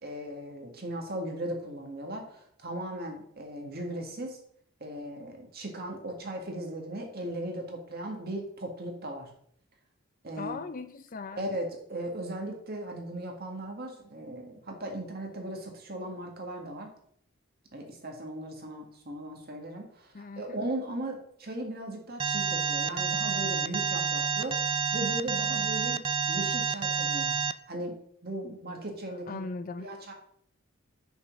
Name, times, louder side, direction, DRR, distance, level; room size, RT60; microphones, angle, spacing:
voice 1, 0.0-4.4 4.8-9.3 10.2-10.5 11.4-16.9 17.7-29.4 29.8-30.1, right 1 dB, 45° right, 2 dB, 1.8 m, -37 dB
voice 2, 10.4-11.6 20.1-20.7 29.3-29.9, left 4 dB, 40° left, 11 dB, 0.5 m, -39 dB
Alarm, 22.2-27.5, right 6 dB, 25° right, 0.3 m, -29 dB
6.5 x 5.3 x 6.1 m, 0.65 s
head